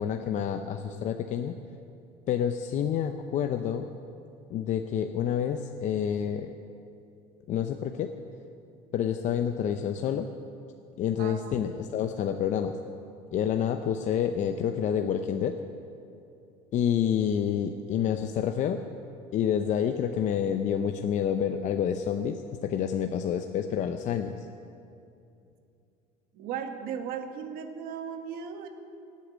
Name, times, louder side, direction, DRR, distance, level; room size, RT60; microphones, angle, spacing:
voice 1, 0.0-1.5 2.3-3.8 4.5-6.5 7.5-8.1 8.9-10.3 11.0-12.7 13.3-15.5 16.7-18.8 19.3-24.5, left 8 dB, 50° left, 6 dB, 0.7 m, -28 dB
voice 2, 11.2-11.6 26.3-28.7, right 7 dB, 65° right, 6 dB, 1.6 m, -36 dB
16.5 x 8.5 x 8.6 m, 2.6 s
cardioid pair, 130°, 16 cm